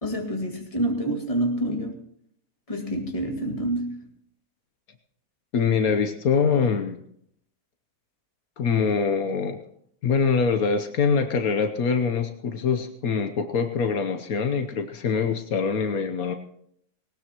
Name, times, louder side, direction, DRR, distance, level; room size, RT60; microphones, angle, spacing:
voice 1, 0.0-1.9 2.7-4.1, right 1 dB, 25° left, 2 dB, 2.1 m, -27 dB
voice 2, 5.5-7.0 8.6-9.6 10.0-16.3, left 5 dB, 75° left, 7 dB, 1.4 m, -24 dB
19.0 x 19.0 x 3.0 m, 0.68 s
omnidirectional pair, 1.5 m